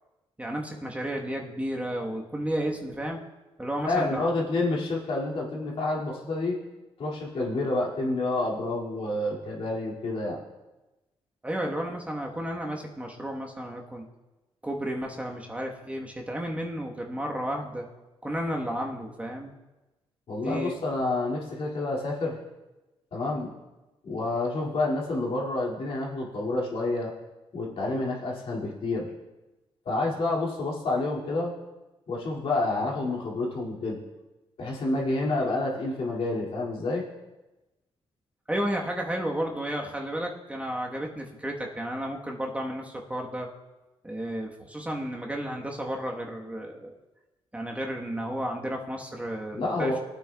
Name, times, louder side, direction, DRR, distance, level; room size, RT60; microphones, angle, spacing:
voice 1, 0.4-3.2 3.6-4.3 11.4-14.0 14.6-17.9 18.2-19.5 20.4-20.7 38.5-43.5 44.0-46.9 47.5-50.0, equal, 10° right, 0 dB, 1.2 m, -32 dB
voice 2, 3.8-6.6 7.0-10.4 20.3-22.4 23.1-23.5 24.0-27.1 27.5-29.1 29.9-31.5 32.1-34.0 34.6-37.0 49.5-50.0, left 2 dB, 60° left, -2 dB, 2.4 m, -28 dB
21.0 x 8.8 x 2.3 m, 1.1 s
cardioid pair, 90°, 11 cm